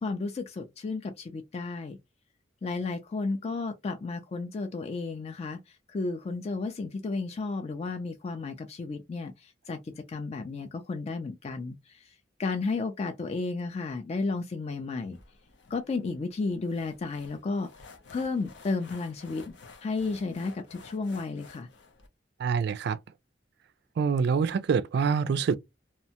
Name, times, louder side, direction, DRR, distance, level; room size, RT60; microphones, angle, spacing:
voice 1, 0.0-2.0 2.6-12.1 12.4-15.2 15.7-17.7 18.1-19.5 19.8-21.7, left 3 dB, 35° left, 0.3 m, -33 dB
sound 1, 15.1-22.1, left 4 dB, 85° left, 0.6 m, -53 dB
voice 2, 22.4-23.0 24.0-25.6, right 6 dB, 65° right, 0.3 m, -25 dB
2.7 x 2.1 x 2.8 m
head